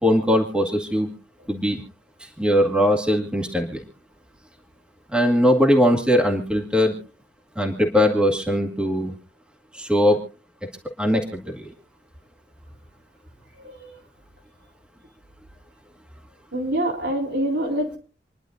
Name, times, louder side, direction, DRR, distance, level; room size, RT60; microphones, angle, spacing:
voice 1, 0.0-1.1 1.5-1.8 2.2-3.9 5.1-6.9 7.6-9.1 9.7-10.2 11.0-11.7, equal, 5° right, 1 dB, 2.1 m, -20 dB
voice 2, 16.5-18.0, right 1 dB, 70° right, 1 dB, 3.7 m, -25 dB
27.5 x 11.0 x 2.6 m, 0.34 s
head